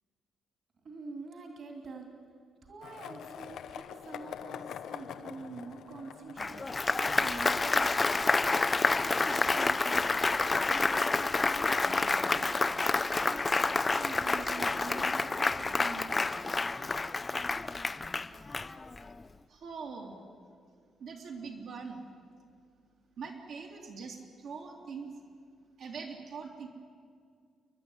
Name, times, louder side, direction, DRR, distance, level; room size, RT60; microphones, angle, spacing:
voice 1, 0.8-2.1 2.6-7.9 8.8-10.1 10.7-12.0 12.3-13.5 13.9-16.2, right 4 dB, 45° right, 3 dB, 2.7 m, -46 dB
Skateboard, 2.8-10.8, left 9 dB, 75° left, 0.8 m, -46 dB
Applause, 6.4-19.1, left 3 dB, 20° left, 0.5 m, -29 dB
voice 2, 19.5-20.2 21.0-22.1 23.2-25.1 25.8-26.7, right 5 dB, 65° right, 0 dB, 2.7 m, -42 dB
30.0 x 11.5 x 9.8 m, 2.2 s
cardioid pair, 160°, 0 cm